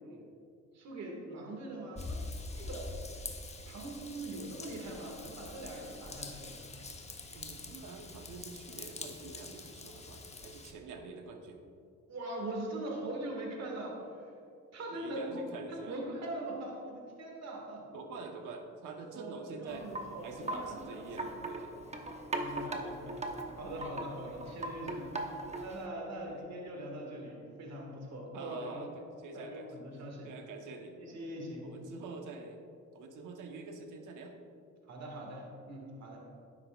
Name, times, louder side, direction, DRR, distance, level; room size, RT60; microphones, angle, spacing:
voice 1, 0.7-2.2 2.5-2.9 3.7-6.7 12.1-14.3 14.7-17.9 19.1-21.5 22.3-25.1 25.6-28.9 29.3-30.3 31.0-31.7 34.9-36.3, right 1 dB, 60° right, 0 dB, 2.0 m, -42 dB
Raindrop / Vehicle horn car horn honking / Trickle dribble, 2.0-10.7, left 3 dB, 20° left, 1.0 m, -45 dB
voice 2, 7.3-11.6 14.9-16.0 17.9-19.9 20.2-21.7 22.5-23.1 25.1-25.2 26.2-26.4 28.3-28.9 29.2-29.7 30.2-31.0 31.4-32.6 32.9-34.3, right 4 dB, 80° right, 4 dB, 1.1 m, -46 dB
Wind chime, 19.7-25.9, right 2 dB, 20° right, 1.0 m, -40 dB
12.0 x 9.6 x 2.4 m, 2.4 s
cardioid pair, 90°, 30 cm